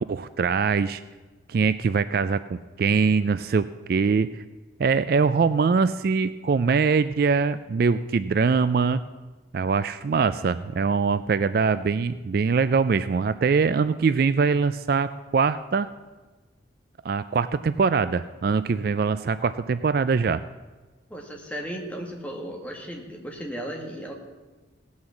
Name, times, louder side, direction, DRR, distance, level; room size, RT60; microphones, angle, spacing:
voice 1, 0.1-1.0 1.5-4.3 4.8-9.0 9.5-15.9 17.0-20.4, right 5 dB, 50° right, 13 dB, 0.3 m, -23 dB
voice 2, 21.1-24.1, equal, 10° left, 0 dB, 1.8 m, -35 dB
17.5 x 6.4 x 7.1 m, 1.3 s
head